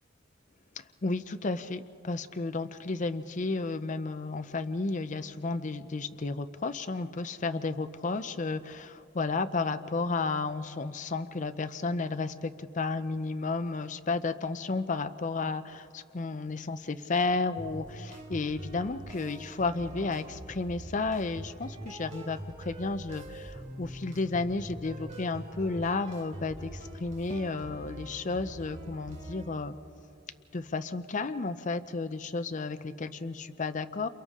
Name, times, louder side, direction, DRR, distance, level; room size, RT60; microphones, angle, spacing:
voice 1, 1.0-29.7 30.5-34.1, left 3 dB, 40° left, 10 dB, 0.6 m, -32 dB
sound 1, 17.6-29.5, right 1 dB, 40° right, 3.0 m, -43 dB
30.0 x 28.5 x 3.7 m, 2.5 s
head